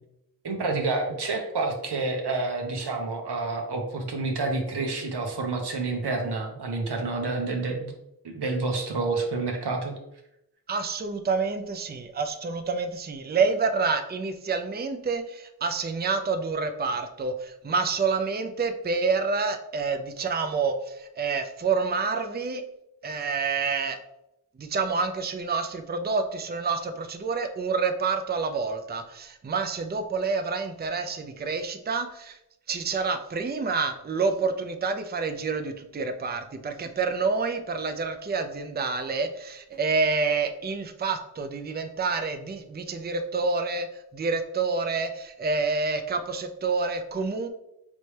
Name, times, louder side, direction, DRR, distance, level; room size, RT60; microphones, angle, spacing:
voice 1, 0.4-7.9 8.2-10.0, right 3 dB, 90° right, 3 dB, 0.8 m, -29 dB
voice 2, 10.7-22.6 23.0-24.0 24.6-32.4 32.7-43.9 44.1-47.5, right 4 dB, 25° right, 7 dB, 0.4 m, -28 dB
4.1 x 3.3 x 3.2 m, 0.84 s
wide cardioid pair, 50°, 39 cm